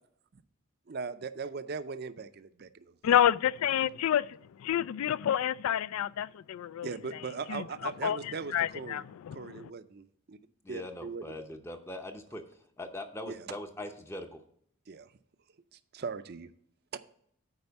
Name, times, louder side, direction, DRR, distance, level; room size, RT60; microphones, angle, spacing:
voice 1, 0.9-2.9 6.8-9.0 9.3-10.4 10.7-11.3 13.3-13.4 14.9-15.1 15.9-16.5 16.9-17.0, right 5 dB, 45° right, 0.5 m, -39 dB
voice 2, 3.0-4.2 4.6-6.9 7.5-7.6 8.0-9.6, left 10 dB, 80° left, 0.3 m, -28 dB
voice 3, 10.6-12.4 12.8-14.4, left 1 dB, 10° left, 0.6 m, -41 dB
9.7 x 4.4 x 6.9 m
head